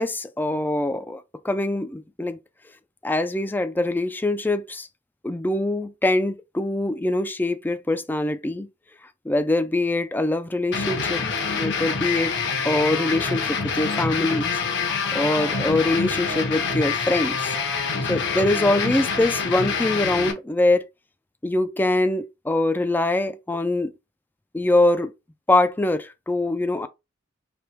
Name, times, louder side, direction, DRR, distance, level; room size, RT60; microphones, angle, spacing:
voice 1, 0.0-2.4 3.0-4.9 5.2-8.7 9.3-11.2 11.5-12.3 12.6-14.6 15.1-17.6 18.1-20.8 21.4-23.9 24.5-25.1 25.5-26.9, left 2 dB, 10° left, 0.4 m, -23 dB
sound 1, 10.7-20.3, left 5 dB, 60° left, 1.0 m, -26 dB
3.3 x 2.9 x 4.4 m
head